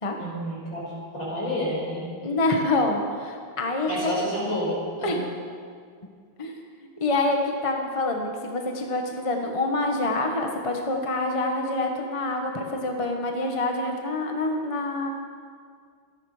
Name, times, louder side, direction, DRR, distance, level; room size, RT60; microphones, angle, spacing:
voice 1, 0.2-2.1 3.9-5.2, equal, 75° left, -5 dB, 6.4 m, -29 dB
voice 2, 2.2-3.9 5.0-5.2 6.4-6.6 7.0-15.1, left 2 dB, 20° left, 2 dB, 1.2 m, -26 dB
25.5 x 11.0 x 5.0 m, 2.1 s
omnidirectional pair, 2.2 m